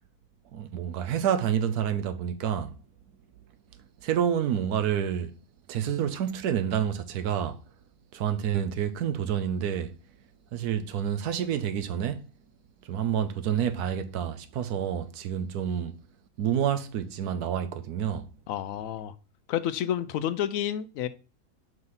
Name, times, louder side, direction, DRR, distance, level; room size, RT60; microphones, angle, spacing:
voice 1, 0.5-2.7 4.0-5.3 5.7-7.6 8.1-9.9 10.5-12.2 12.8-15.9 16.4-18.3, right 9 dB, 80° right, 1.2 m, -28 dB
voice 2, 18.5-19.1 19.5-21.1, left 10 dB, 70° left, 0.9 m, -30 dB
5.2 x 4.0 x 5.6 m
omnidirectional pair, 1.6 m